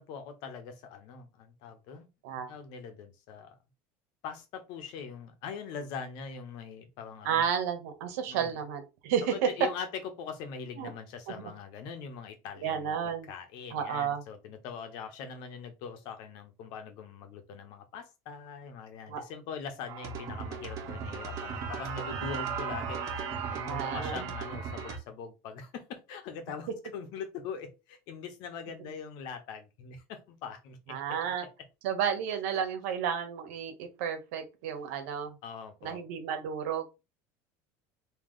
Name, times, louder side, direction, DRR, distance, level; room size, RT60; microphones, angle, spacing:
voice 1, 0.0-3.6 4.2-7.4 8.3-8.6 9.2-23.0 23.5-31.2 35.4-36.0, left 6 dB, 65° left, 7 dB, 1.2 m, -42 dB
voice 2, 7.2-9.3 10.8-10.9 12.6-13.3 13.7-14.2 19.1-19.2 23.7-24.2 30.9-31.4 31.8-35.3 35.8-36.8, right 8 dB, 80° right, 7 dB, 1.4 m, -32 dB
sound 1, 19.9-25.0, right 6 dB, 45° right, 1.5 m, -36 dB
3.8 x 3.2 x 3.2 m, 0.26 s
supercardioid pair, 125°, 8 cm